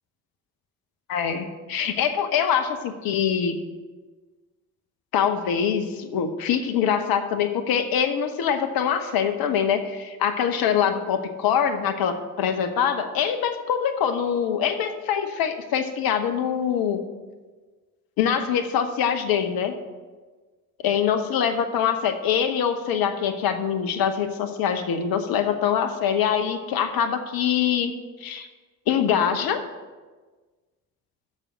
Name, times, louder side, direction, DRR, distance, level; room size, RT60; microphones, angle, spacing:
voice 1, 1.1-3.6 5.1-17.0 18.2-19.7 20.8-27.9 28.2-28.5 28.9-29.6, left 8 dB, 55° left, 7 dB, 0.9 m, -24 dB
7.4 x 6.7 x 7.1 m, 1.3 s
figure-of-eight pair, 45°, 43 cm